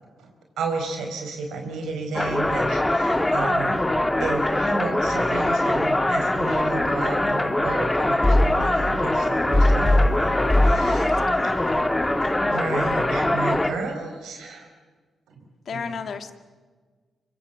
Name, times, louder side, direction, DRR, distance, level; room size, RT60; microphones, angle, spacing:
voice 1, 0.6-3.9 4.2-12.1 12.4-14.7 15.3-15.4 15.7-15.8, right 4 dB, 85° right, 4 dB, 5.0 m, -32 dB
sound 1, 2.1-13.7, left 1 dB, 15° left, 2.3 m, -21 dB
voice 2, 10.4-11.6 15.7-16.3, left 6 dB, 65° left, 9 dB, 2.0 m, -34 dB
25.0 x 23.0 x 8.2 m, 1.4 s
supercardioid pair, 55°, 0 cm